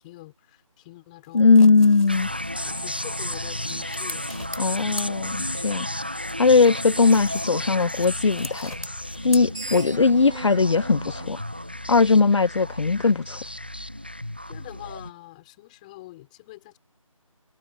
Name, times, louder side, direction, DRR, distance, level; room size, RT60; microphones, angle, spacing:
voice 1, 0.0-1.5 2.6-4.3 14.5-16.8, left 19 dB, 15° left, 4.4 m, -44 dB
sound 1, 1.2-5.8 6.1-10.1, left 2 dB, 85° left, 3.2 m, -42 dB
voice 2, 1.3-2.3 4.6-5.9 6.4-8.7 9.2-11.4 11.9-13.4, left 4 dB, 55° left, 0.6 m, -19 dB
sound 2, 2.1-15.1, left 1 dB, 20° right, 0.4 m, -33 dB
Screech, 9.2-12.4, right 3 dB, 60° right, 1.9 m, -41 dB
figure-of-eight pair, 160°, 18 cm